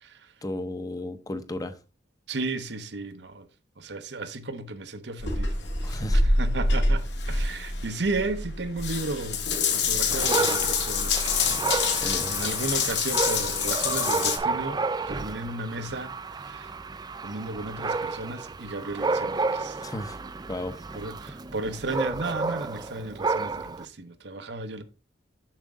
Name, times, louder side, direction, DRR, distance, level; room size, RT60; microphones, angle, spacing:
voice 1, 0.4-1.8 5.8-6.3 11.4-12.3 19.8-20.2 20.5-20.8, left 1 dB, 20° left, 0.8 m, -35 dB
voice 2, 2.3-3.5 3.8-5.5 5.8-9.4 9.7-11.5 11.8-16.7 17.2-19.8 20.9-24.8, right 2 dB, 70° right, 0.9 m, -34 dB
Water tap faucet / Bathtub (filling or washing) / Drip, 5.2-14.4, left 4 dB, 75° left, 1.8 m, -26 dB
Dog, 10.1-23.9, right 4 dB, 25° right, 0.4 m, -31 dB
7.4 x 6.5 x 3.7 m
head